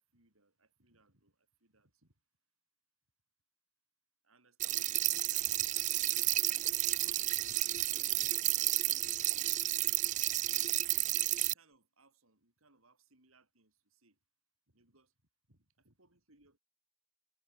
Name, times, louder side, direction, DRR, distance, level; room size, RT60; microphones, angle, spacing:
voice 1, 0.0-2.2 4.2-10.1 10.4-11.1 11.4-14.2 14.7-15.1 15.5-16.6, right 2 dB, 80° right, 6.3 m, -68 dB
sound 1, 4.6-11.5, right 15 dB, 35° right, 0.3 m, -31 dB
head